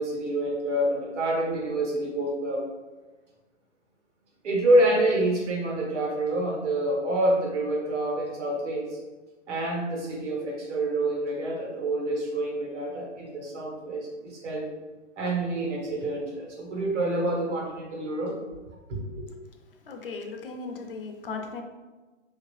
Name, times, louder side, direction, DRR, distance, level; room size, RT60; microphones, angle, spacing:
voice 1, 0.0-2.7 4.4-9.0 9.5-14.7 15.2-18.3 18.9-19.3, right 1 dB, 65° right, -2 dB, 1.3 m, -27 dB
voice 2, 19.8-21.6, left 4 dB, 50° left, 4 dB, 0.5 m, -37 dB
3.1 x 2.8 x 3.1 m, 1.2 s
hypercardioid pair, 150°, 37 cm